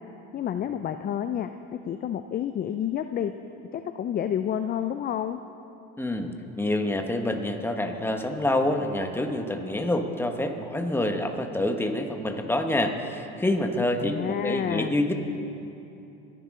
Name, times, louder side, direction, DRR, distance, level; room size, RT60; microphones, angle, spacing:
voice 1, 0.3-3.3 3.7-5.4 14.0-15.0, left 9 dB, 30° left, 9 dB, 0.4 m, -29 dB
voice 2, 6.0-6.3 6.6-15.1, left 1 dB, 5° left, 5 dB, 1.2 m, -27 dB
24.0 x 10.5 x 3.7 m, 2.9 s
supercardioid pair, 105°, 32 cm